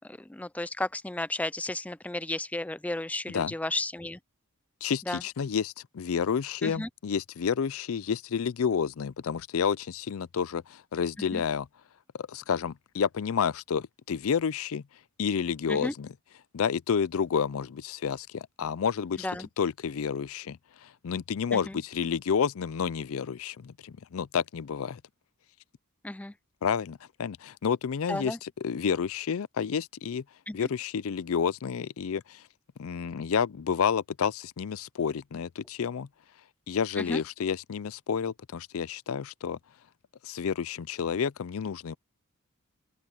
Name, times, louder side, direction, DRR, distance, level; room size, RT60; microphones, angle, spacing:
voice 1, 0.0-4.2 5.1-5.2 6.6-6.9 11.3-11.4 15.7-15.9 19.2-19.5 21.5-21.8 26.0-26.3 28.1-28.4 30.5-30.7 37.0-37.2, left 2 dB, 5° left, 0.4 m, -33 dB
voice 2, 4.8-11.7 12.2-14.8 15.2-16.1 16.5-19.3 19.6-20.6 20.8-25.0 26.6-30.2 30.5-32.4 32.8-36.1 36.7-39.6 40.2-42.0, left 7 dB, 65° left, 0.4 m, -30 dB
open air
head